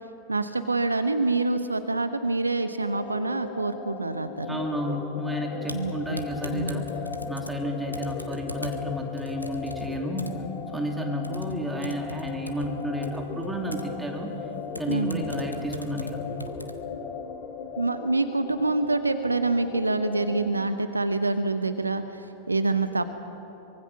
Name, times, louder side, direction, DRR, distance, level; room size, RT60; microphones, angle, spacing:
voice 1, 0.3-4.6 5.7-6.2 6.5-6.8 14.9-15.3 17.8-23.1, right 3 dB, 80° right, 10 dB, 0.9 m, -26 dB
sound 1, 2.8-20.5, left 6 dB, 45° left, 2.6 m, -38 dB
voice 2, 4.5-6.9 7.3-10.3 10.7-14.3 14.7-16.2, equal, 5° right, 2 dB, 2.6 m, -31 dB
Typing, 5.6-16.8, left 1 dB, 85° left, 1.1 m, -41 dB
24.0 x 23.0 x 6.0 m, 3.0 s
figure-of-eight pair, 90°, 0 cm